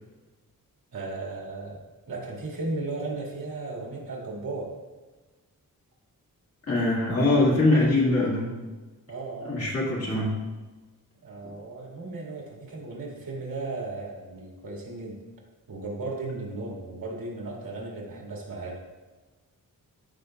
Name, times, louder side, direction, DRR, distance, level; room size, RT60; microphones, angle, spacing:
voice 1, 0.9-1.8 2.1-4.7 9.1-9.6 11.2-15.2 15.7-18.8, right 3 dB, 80° right, -2 dB, 1.8 m, -35 dB
voice 2, 6.7-8.6 9.4-10.3, left 2 dB, 45° left, -5 dB, 1.9 m, -23 dB
14.0 x 4.8 x 2.3 m, 1.2 s
wide cardioid pair, 175°, 34 cm